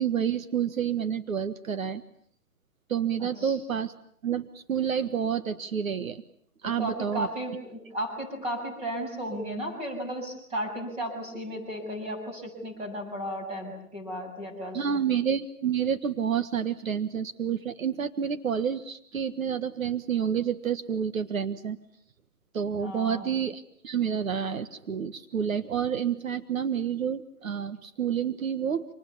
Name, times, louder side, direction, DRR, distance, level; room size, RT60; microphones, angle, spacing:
voice 1, 0.0-2.0 2.9-3.9 4.2-6.2 6.6-7.3 14.7-21.8 22.5-28.9, right 8 dB, 60° right, 10 dB, 1.6 m, -29 dB
voice 2, 3.2-3.6 6.8-15.0 22.8-23.4, equal, 15° right, 3 dB, 7.1 m, -34 dB
30.0 x 27.0 x 7.2 m, 0.63 s
hypercardioid pair, 155°, 45 cm